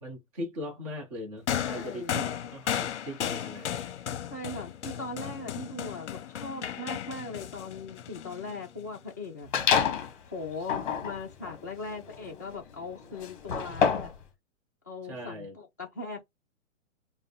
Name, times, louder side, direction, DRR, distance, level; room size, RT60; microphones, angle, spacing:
voice 1, 0.0-3.9 15.0-15.6, left 1 dB, 25° right, 0.8 m, -40 dB
sound 1, 1.5-9.0 10.0-10.1, left 9 dB, 55° left, 0.7 m, -35 dB
voice 2, 1.6-2.1 4.3-9.5 10.3-14.1 14.9-16.2, left 3 dB, 15° left, 0.4 m, -39 dB
sound 2, 9.5-10.1 10.6-14.2, left 6 dB, 35° left, 1.0 m, -28 dB
4.5 x 2.0 x 3.4 m
hypercardioid pair, 165°, 41 cm